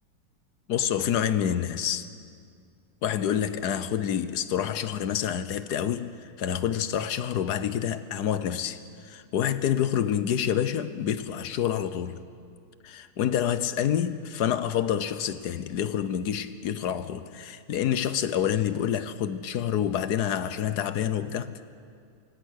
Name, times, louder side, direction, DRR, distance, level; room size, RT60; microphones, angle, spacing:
voice 1, 0.7-2.1 3.0-8.8 9.0-12.2 12.8-21.6, left 9 dB, 60° left, 1.2 m, -27 dB
26.0 x 24.0 x 6.4 m
omnidirectional pair, 2.4 m